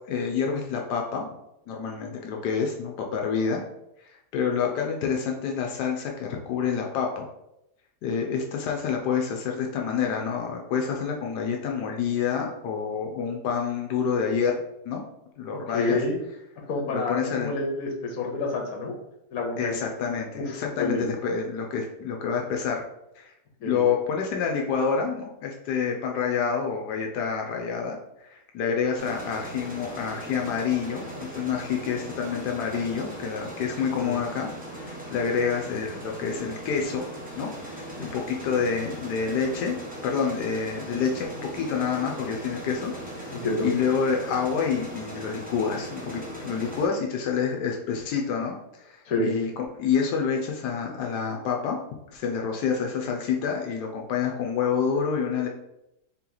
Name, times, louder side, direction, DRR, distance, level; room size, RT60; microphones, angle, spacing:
voice 1, 0.1-1.3 1.7-3.6 4.3-7.3 8.0-14.6 14.8-15.0 15.4-16.0 16.9-17.5 19.6-22.8 23.2-23.3 23.6-37.1 37.3-39.8 40.0-43.3 43.6-51.8 52.1-55.5, left 6 dB, 85° left, 1 dB, 1.2 m, -28 dB
voice 2, 15.7-16.2 16.7-18.9 19.3-19.9 20.3-21.1 23.6-23.8 34.0-34.2 43.3-43.7 49.0-49.3, left 2 dB, 65° left, 0 dB, 1.3 m, -28 dB
sound 1, 29.0-46.9, right 1 dB, 10° right, 0.6 m, -39 dB
3.9 x 2.9 x 3.8 m, 0.84 s
omnidirectional pair, 1.7 m